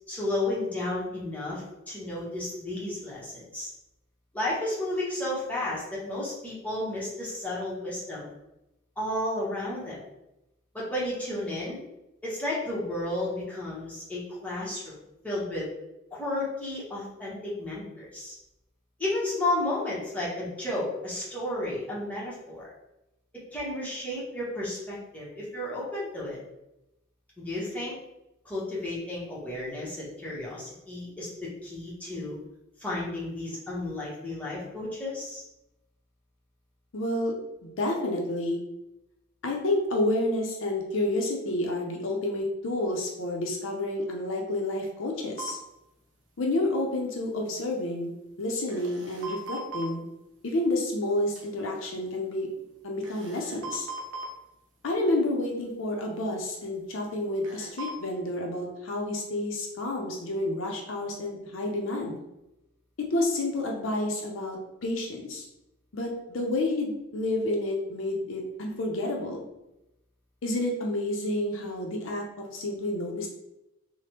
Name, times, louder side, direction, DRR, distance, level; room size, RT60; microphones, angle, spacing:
voice 1, 0.1-3.7 4.3-8.3 9.0-10.0 10.7-11.8 12.2-15.0 15.2-15.7 16.1-18.3 19.0-22.7 23.5-26.4 27.4-27.9 28.4-32.4 32.8-35.4, left 1 dB, 10° left, -7 dB, 0.9 m, -32 dB
voice 2, 36.9-37.3 37.6-38.6 39.4-45.6 46.4-48.1 48.4-50.0 50.4-52.5 52.8-53.9 54.8-62.1 63.1-65.4 65.9-69.4 70.4-73.3, left 1 dB, 80° left, 0 dB, 0.6 m, -29 dB
sound 1, 45.4-45.5 48.5-49.9 51.3-51.4 53.0-54.3 57.4-57.9, right 3 dB, 75° right, 0.7 m, -38 dB
3.2 x 2.1 x 2.9 m, 0.90 s
head